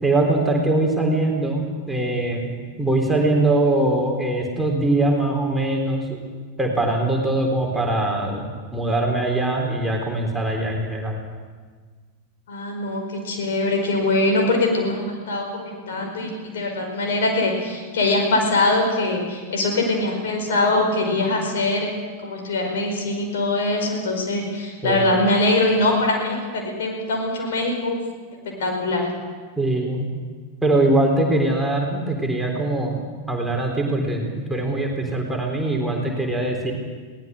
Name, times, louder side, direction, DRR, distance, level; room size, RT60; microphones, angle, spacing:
voice 1, 0.0-2.5 2.8-6.2 6.6-8.5 8.7-11.2 24.8-25.0 29.6-30.1 30.6-34.2 34.5-36.7, right 2 dB, 5° right, -1 dB, 3.8 m, -22 dB
voice 2, 12.5-21.9 22.2-28.0 28.6-29.1, left 2 dB, 60° left, 2 dB, 5.0 m, -22 dB
21.5 x 18.5 x 6.6 m, 1.5 s
figure-of-eight pair, 90°, 0 cm